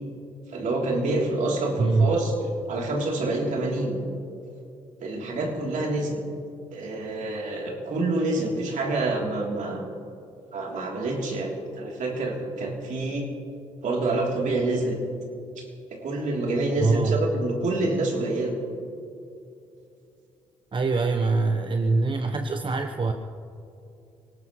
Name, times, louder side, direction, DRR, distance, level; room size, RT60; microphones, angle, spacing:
voice 1, 0.5-2.3 2.7-4.0 5.0-6.2 6.7-9.8 10.5-13.3 13.8-15.0 15.6-15.7 15.9-18.5, right 2 dB, 65° right, -1 dB, 3.2 m, -27 dB
voice 2, 1.8-2.2 16.8-17.3 20.7-23.1, right 3 dB, 35° right, 5 dB, 1.0 m, -23 dB
24.0 x 18.0 x 3.1 m, 2.6 s
hypercardioid pair, 50°, 14 cm